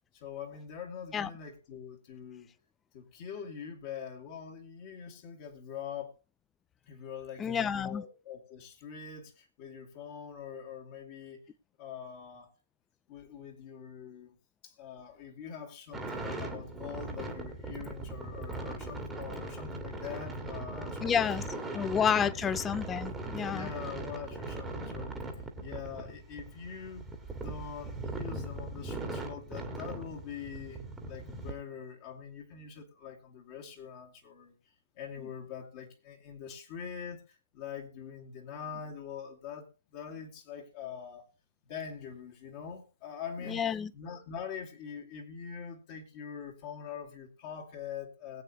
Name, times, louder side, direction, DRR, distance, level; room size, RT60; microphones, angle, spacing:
voice 1, 0.1-2.5 2.9-6.2 6.9-11.4 11.8-12.5 13.1-14.3 14.6-22.5 23.5-25.3 25.6-27.1 27.3-30.8 31.1-34.5 35.0-41.3 41.6-48.4, left 7 dB, 30° left, 2.3 m, -44 dB
voice 2, 7.4-8.0 21.0-21.4 21.7-23.7 43.5-43.9, left 7 dB, 15° left, 0.5 m, -29 dB
sound 1, 15.9-31.5, right 2 dB, 5° right, 1.8 m, -39 dB
21.0 x 8.3 x 2.9 m
figure-of-eight pair, 130°, 0 cm